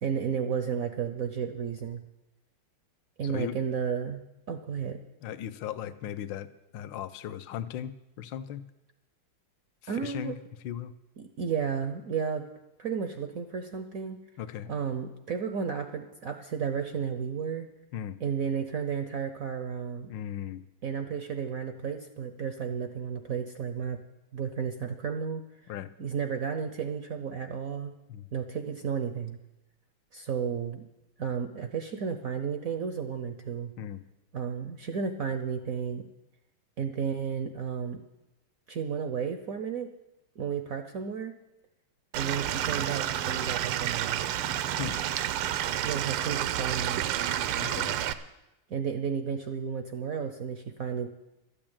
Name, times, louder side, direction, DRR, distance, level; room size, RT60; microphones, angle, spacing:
voice 1, 0.0-2.0 3.2-4.2 4.5-5.0 9.9-10.4 11.2-12.4 12.8-14.2 14.7-17.7 18.2-20.1 20.8-24.0 24.3-25.4 26.0-27.9 28.3-29.4 30.1-30.8 31.2-33.7 34.3-36.0 36.8-38.0 38.7-39.9 40.4-41.3 42.1-44.4 45.8-47.1 48.7-51.1, right 7 dB, 65° right, 7 dB, 0.8 m, -32 dB
voice 2, 3.2-3.6 5.2-6.5 6.7-8.6 9.8-10.4 10.6-10.9 14.4-14.7 17.9-18.2 20.1-20.6 25.7-25.9 28.1-28.3 33.8-34.0 44.8-45.0 47.6-47.9, left 10 dB, 70° left, 13 dB, 1.2 m, -37 dB
Stream / Liquid, 42.1-48.1, right 11 dB, 85° right, 1.6 m, -30 dB
13.0 x 8.8 x 8.7 m, 0.94 s
omnidirectional pair, 2.4 m